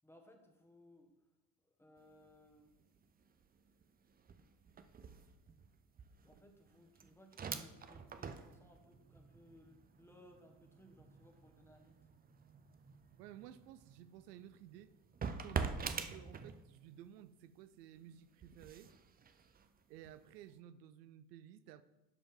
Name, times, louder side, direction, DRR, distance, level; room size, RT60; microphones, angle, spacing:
voice 1, 0.0-1.1 1.6-2.9 6.1-12.0, left 1 dB, 5° left, 3 dB, 1.6 m, -63 dB
sound 1, 2.0-2.3 2.6-17.0 17.4-20.4, right 6 dB, 20° right, 0.5 m, -47 dB
voice 2, 13.2-14.9 15.4-18.9 19.9-21.8, right 11 dB, 80° right, 13 dB, 0.6 m, -55 dB
11.5 x 5.2 x 3.8 m, 0.96 s
hypercardioid pair, 80°, 48 cm